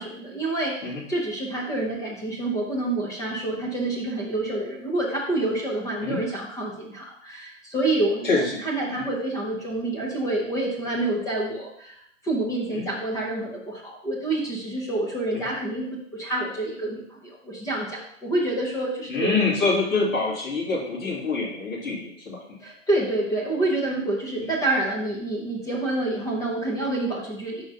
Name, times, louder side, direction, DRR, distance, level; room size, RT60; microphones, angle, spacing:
voice 1, 0.0-11.9 12.2-15.9 16.1-19.3 22.6-27.7, right 2 dB, 10° left, -3 dB, 0.7 m, -27 dB
voice 2, 8.2-8.6 8.9-9.0 12.7-12.8 15.3-15.5 19.1-22.6 24.4-24.5, left 3 dB, 85° left, -6 dB, 2.6 m, -26 dB
4.9 x 3.9 x 5.4 m, 0.69 s
hypercardioid pair, 145°, 39 cm